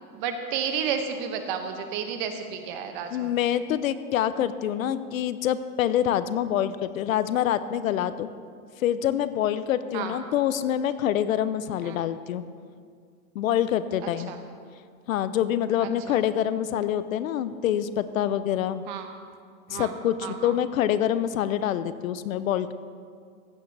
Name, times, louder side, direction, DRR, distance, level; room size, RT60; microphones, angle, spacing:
voice 1, 0.1-3.3 9.9-10.1 11.8-12.0 14.3-14.4 15.8-16.2 18.9-19.1 19.7-19.9 20.2-20.5, right 7 dB, 30° right, 6 dB, 0.9 m, -32 dB
voice 2, 3.1-8.3 8.8-12.4 13.3-14.3 15.1-18.8 19.7-22.7, left 10 dB, 60° left, 14 dB, 0.6 m, -26 dB
15.5 x 9.5 x 3.3 m, 2.1 s
hypercardioid pair, 155°, 46 cm